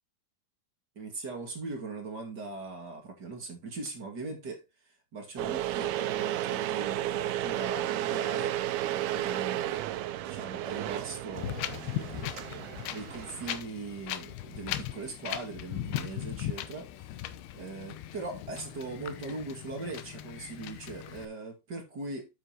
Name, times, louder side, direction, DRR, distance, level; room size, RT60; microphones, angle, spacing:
voice 1, 1.0-4.6 5.1-9.8 10.3-12.3 12.9-16.9 17.5-22.3, right 3 dB, 35° right, 2.1 m, -40 dB
sound 1, 5.4-13.6, right 13 dB, 90° right, 2.7 m, -33 dB
Wind, 11.3-21.3, left 13 dB, 90° left, 2.9 m, -38 dB
9.4 x 8.2 x 2.9 m
omnidirectional pair, 4.5 m